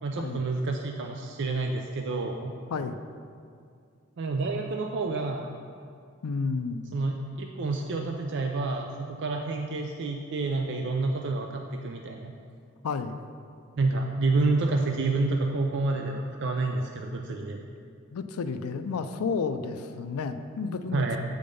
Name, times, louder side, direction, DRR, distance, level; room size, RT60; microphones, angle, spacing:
voice 1, 0.0-2.5 4.2-5.5 6.9-12.3 13.8-17.6 20.9-21.2, right 3 dB, 55° right, 3 dB, 0.4 m, -29 dB
voice 2, 6.2-6.9 12.8-13.2 18.1-21.0, left 4 dB, 85° left, 9 dB, 0.4 m, -31 dB
7.7 x 5.1 x 5.3 m, 2.3 s
head